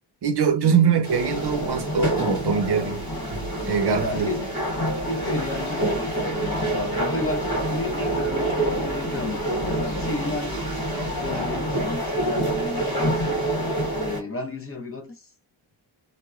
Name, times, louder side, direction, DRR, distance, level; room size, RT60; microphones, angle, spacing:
voice 1, 0.2-3.0 3.3-4.3, right 6 dB, 55° right, 0.7 m, -23 dB
sound 1, 1.0-14.2, right 1 dB, 45° left, 1.3 m, -26 dB
voice 2, 4.0-4.5 5.1-10.7 11.2-12.8 13.9-15.3, left 2 dB, 30° left, 0.9 m, -32 dB
2.8 x 2.2 x 2.4 m
wide cardioid pair, 80°, 48 cm